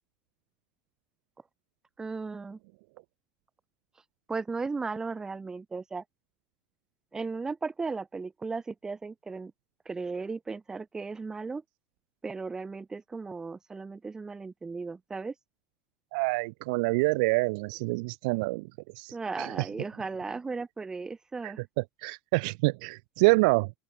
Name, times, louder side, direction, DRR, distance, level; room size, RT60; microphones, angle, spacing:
voice 1, 2.0-2.6 4.3-6.0 7.1-9.5 9.8-11.6 12.2-15.3 19.1-21.6, right 4 dB, 15° right, 1.2 m, -36 dB
voice 2, 16.1-18.7 19.0-19.7 21.4-21.5 22.0-23.7, right 28 dB, 75° right, 0.4 m, -26 dB
open air
supercardioid pair, 145°, 5 cm